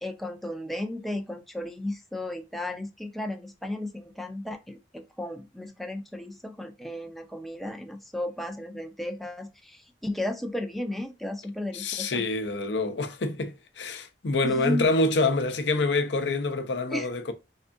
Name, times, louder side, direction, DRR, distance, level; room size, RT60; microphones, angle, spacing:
voice 1, 0.0-12.2 14.4-14.9 16.9-17.1, left 1 dB, ahead, 0.4 m, -34 dB
voice 2, 11.7-17.3, left 2 dB, 70° left, 0.6 m, -26 dB
3.5 x 3.5 x 2.6 m
head